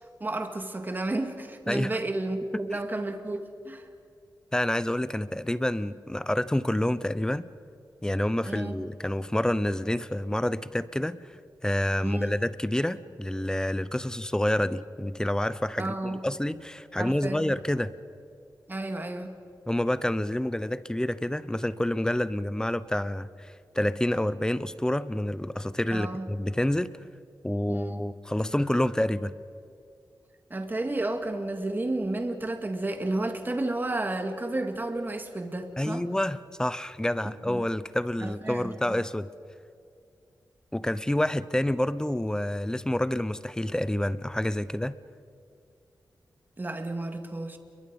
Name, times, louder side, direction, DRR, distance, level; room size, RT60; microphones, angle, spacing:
voice 1, 0.2-3.9 8.4-8.8 12.0-12.4 15.8-16.2 17.0-17.5 18.7-19.3 25.9-26.3 27.7-28.0 30.5-36.1 37.2-37.7 38.2-39.0 46.6-47.6, right 2 dB, 25° right, 6 dB, 2.1 m, -32 dB
voice 2, 1.7-2.0 2.7-2.8 4.5-7.5 8.0-17.9 19.7-26.9 27.4-29.3 35.8-39.3 40.7-45.0, left 1 dB, 10° left, 16 dB, 0.8 m, -28 dB
30.0 x 22.5 x 5.4 m, 2.4 s
wide cardioid pair, 105°, 7 cm